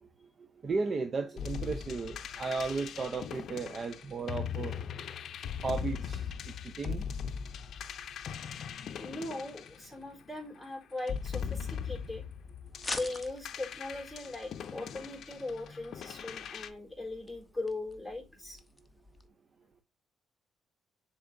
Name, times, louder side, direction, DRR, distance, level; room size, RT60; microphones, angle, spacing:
voice 1, 0.0-4.8 5.6-6.3 6.6-7.1, right 4 dB, 40° right, 0.6 m, -35 dB
sound 1, 1.4-10.4 11.0-16.7, left 7 dB, 65° left, 0.5 m, -40 dB
voice 2, 9.0-12.2 12.9-18.6, left 2 dB, 5° right, 3.6 m, -39 dB
sound 2, 12.7-19.3, left 2 dB, 15° left, 0.7 m, -46 dB
10.0 x 3.7 x 2.6 m
cardioid pair, 90°, 0 cm